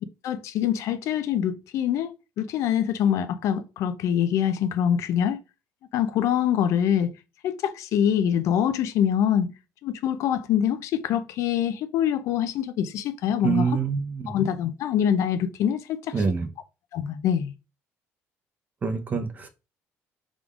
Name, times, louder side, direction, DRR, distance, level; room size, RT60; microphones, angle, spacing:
voice 1, 0.2-2.1 2.4-5.4 5.9-7.1 7.4-9.5 9.8-13.7 14.3-16.1 16.9-17.5, left 9 dB, 70° left, 0.6 m, -24 dB
voice 2, 13.4-14.4 16.1-16.5 18.8-19.5, right 5 dB, 30° right, 0.8 m, -26 dB
3.7 x 3.5 x 3.7 m
cardioid pair, 125°, 5 cm